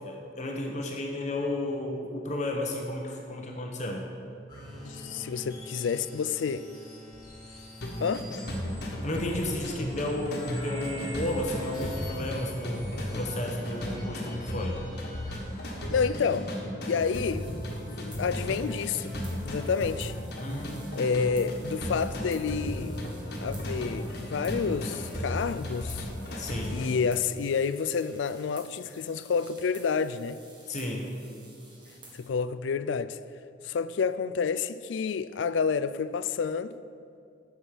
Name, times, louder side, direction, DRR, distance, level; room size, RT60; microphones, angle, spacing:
voice 1, 0.0-4.0 9.0-12.8 13.1-14.8 20.4-21.3 26.4-26.8 30.7-31.1, left 1 dB, 40° left, 1.0 m, -33 dB
sound 1, 4.5-16.6, left 1 dB, 20° left, 2.4 m, -44 dB
voice 2, 4.8-6.6 8.0-8.3 15.9-16.5 16.9-17.5 17.8-19.2 19.4-20.1 21.0-23.0 23.4-26.1 26.7-30.4 32.1-33.2 33.6-36.8, left 6 dB, 75° left, 0.4 m, -29 dB
sound 2, 7.8-26.9, equal, 55° left, 1.5 m, -35 dB
sound 3, 16.9-32.3, right 2 dB, 25° right, 1.9 m, -53 dB
8.2 x 6.3 x 7.3 m
head